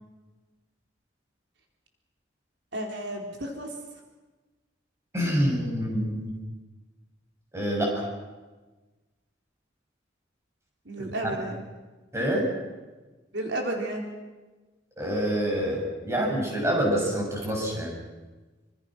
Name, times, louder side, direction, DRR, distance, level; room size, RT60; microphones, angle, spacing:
voice 1, 2.7-3.8 10.9-11.6 13.3-14.1, right 1 dB, 70° right, 1 dB, 3.9 m, -32 dB
voice 2, 5.1-6.3 7.5-8.1 11.0-11.1 12.1-12.4 15.0-17.9, equal, 15° right, -1 dB, 6.9 m, -26 dB
27.0 x 25.5 x 6.2 m, 1.2 s
head